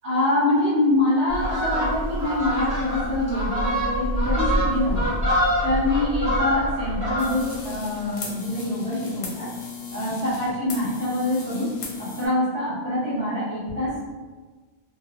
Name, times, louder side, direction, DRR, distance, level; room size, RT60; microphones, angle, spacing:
voice 1, 0.0-5.1 5.6-9.5 9.9-11.7 12.0-14.1, left 1 dB, 75° right, -10 dB, 1.3 m, -25 dB
Fowl, 1.3-7.6 8.0-8.2, equal, 35° right, 1.2 m, -25 dB
sound 1, 7.2-12.3, left 5 dB, 60° left, 0.7 m, -37 dB
2.6 x 2.2 x 2.5 m, 1.4 s
omnidirectional pair, 1.1 m